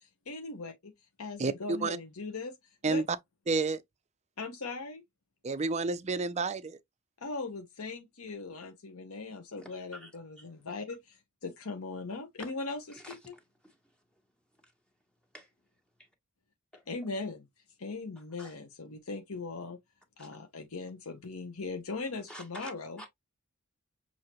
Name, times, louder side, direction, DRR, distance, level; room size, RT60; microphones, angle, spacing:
voice 1, 0.3-0.9 1.2-2.6 2.8-3.0 4.4-5.0 7.2-13.3 16.9-17.5 17.8-19.8 20.2-23.0, left 3 dB, 90° left, 1.0 m, -39 dB
voice 2, 3.5-3.8 5.4-6.8, right 3 dB, 30° right, 0.5 m, -29 dB
voice 3, 9.6-10.1 10.4-10.5 12.4-12.5 12.9-14.0 14.5-14.7 15.3-15.5 16.0-16.1 16.7-16.8 18.4-18.5 20.2-20.3 22.3-22.7 23.0-23.1, equal, 5° left, 1.3 m, -49 dB
6.3 x 2.7 x 3.0 m
head